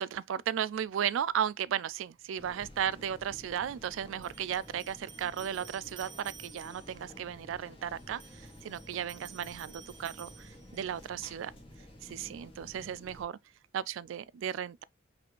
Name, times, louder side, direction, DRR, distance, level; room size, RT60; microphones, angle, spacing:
voice 1, 0.0-11.5 12.0-13.4 13.7-14.8, right 9 dB, 80° right, 0.3 m, -35 dB
sound 1, 2.4-13.2, left 1 dB, 25° left, 1.5 m, -52 dB
sound 2, 4.2-7.0 8.0-11.0, right 8 dB, 25° right, 0.6 m, -53 dB
5.8 x 3.4 x 2.4 m
head